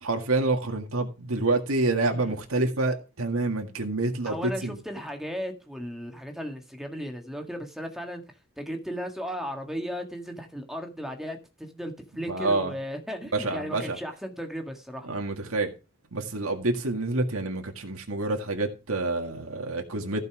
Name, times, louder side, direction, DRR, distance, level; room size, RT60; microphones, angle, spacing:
voice 1, 0.0-4.8 12.3-12.7 13.3-14.0 15.0-15.7 16.1-20.2, right 2 dB, 85° right, 1.9 m, -27 dB
voice 2, 4.3-8.2 8.6-15.1, equal, ahead, 1.7 m, -36 dB
15.0 x 5.5 x 6.0 m
head